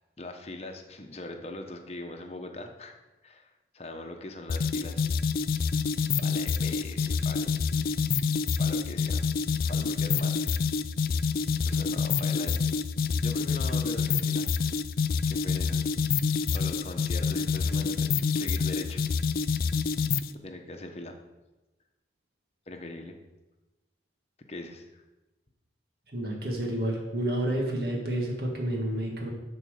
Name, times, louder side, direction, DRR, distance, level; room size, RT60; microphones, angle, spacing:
voice 1, 0.2-3.0 3.2-3.5 3.7-5.2 6.2-7.6 8.6-9.2 9.6-10.6 11.6-12.6 13.0-14.5 15.3-15.8 16.5-19.0 20.3-21.1 22.7-23.2 24.5-25.0, left 2 dB, 35° left, 4 dB, 1.0 m, -41 dB
sound 1, 4.5-20.3, left 5 dB, 55° left, 0.4 m, -27 dB
voice 2, 26.1-29.3, right 1 dB, 60° right, -1 dB, 1.7 m, -30 dB
11.0 x 4.4 x 6.5 m, 1.1 s
head